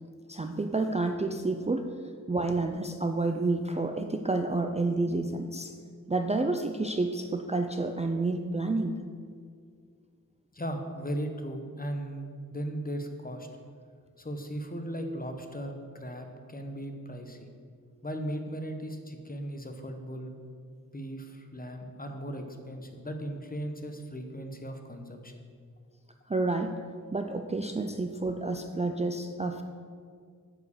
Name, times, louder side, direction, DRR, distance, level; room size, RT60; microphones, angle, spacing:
voice 1, 0.3-1.9 2.3-5.7 6.1-9.0 26.3-26.8 27.1-29.6, right 2 dB, 20° right, 5 dB, 0.4 m, -29 dB
voice 2, 10.5-13.5 14.2-17.5 18.0-20.3 20.9-25.4, equal, 25° left, 5 dB, 0.9 m, -37 dB
9.0 x 4.9 x 7.0 m, 2.1 s
wide cardioid pair, 95°, 34 cm